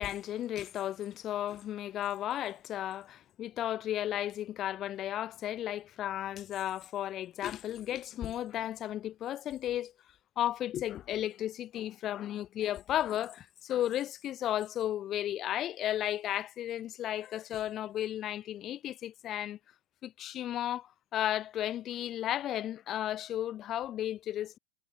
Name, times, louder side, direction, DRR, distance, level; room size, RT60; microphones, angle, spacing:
voice 1, 0.0-9.9 10.4-19.6 20.0-24.6, left 12 dB, 35° left, 1.6 m, -34 dB
hypercardioid pair, 95°, 0 cm